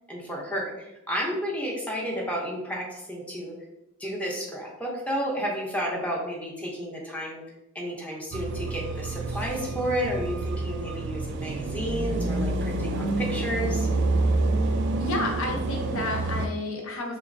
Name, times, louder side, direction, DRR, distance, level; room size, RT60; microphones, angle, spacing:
voice 1, 0.1-3.5 4.0-7.4 7.7-13.9, equal, 5° left, -3 dB, 0.6 m, -31 dB
sound 1, 8.3-16.5, right 2 dB, 50° right, 0.3 m, -28 dB
voice 2, 15.0-17.2, left 2 dB, 65° left, 1 dB, 0.7 m, -30 dB
3.7 x 3.0 x 2.5 m, 0.92 s
head